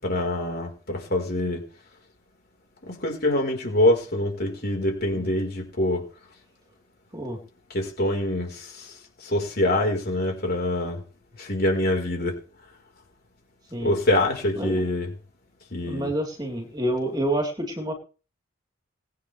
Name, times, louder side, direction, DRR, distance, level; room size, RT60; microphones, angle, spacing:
voice 1, 0.0-1.6 2.8-6.1 7.7-11.0 11.4-12.4 13.8-15.1 15.7-16.1, left 1 dB, 45° left, 5.0 m, -25 dB
voice 2, 15.8-17.9, right 1 dB, 20° right, 4.1 m, -28 dB
22.0 x 9.4 x 3.5 m
head